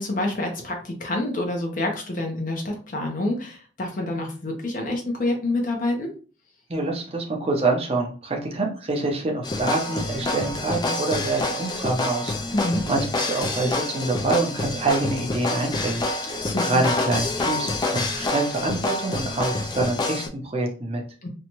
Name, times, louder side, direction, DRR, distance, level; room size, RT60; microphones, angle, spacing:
voice 1, 0.0-6.1 12.5-12.8 16.4-16.8 21.2-21.3, left 2 dB, 45° left, 2 dB, 0.7 m, -27 dB
voice 2, 6.7-21.0, right 2 dB, 30° right, 1 dB, 0.6 m, -26 dB
sound 1, 9.4-20.3, left 2 dB, 25° left, 0.3 m, -27 dB
2.7 x 2.2 x 2.9 m, 0.38 s
head